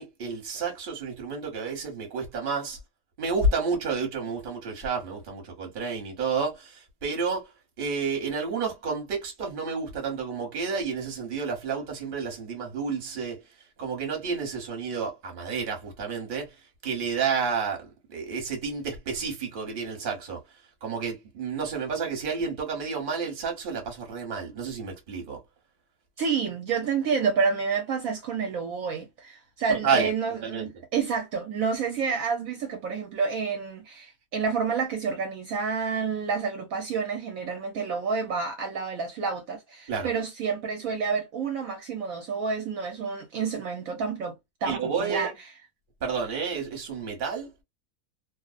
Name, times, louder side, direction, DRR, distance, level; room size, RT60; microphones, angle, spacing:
voice 1, 0.0-2.8 3.2-7.5 7.8-13.4 13.8-16.5 16.8-20.4 20.8-25.4 29.7-30.1 30.4-30.7 39.9-40.1 44.6-45.3 46.0-47.5, right 5 dB, 40° right, 0.9 m, -30 dB
voice 2, 26.2-45.3, right 5 dB, 70° right, 0.9 m, -29 dB
2.5 x 2.0 x 2.4 m
omnidirectional pair, 1.6 m